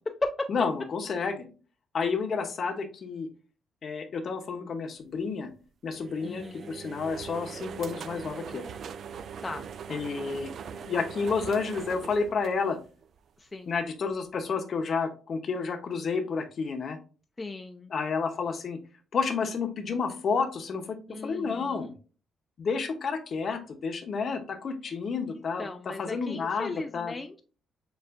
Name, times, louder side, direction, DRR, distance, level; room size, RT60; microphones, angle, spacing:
voice 1, 0.5-1.5 1.9-3.3 3.8-5.5 5.8-8.6 9.9-10.5 10.8-12.8 13.7-17.0 17.9-18.8 19.1-21.0 21.2-21.9 22.6-27.1, left 5 dB, 50° left, 7 dB, 0.7 m, -30 dB
sound 1, 5.9-13.2, right 7 dB, 60° right, 0.3 m, -41 dB
voice 2, 6.2-6.7 9.4-9.7 13.4-13.7 17.4-17.9 21.1-21.9 25.6-27.4, left 2 dB, 25° left, 4 dB, 0.4 m, -37 dB
6.8 x 2.4 x 2.4 m, 0.36 s
cardioid pair, 90°, 0 cm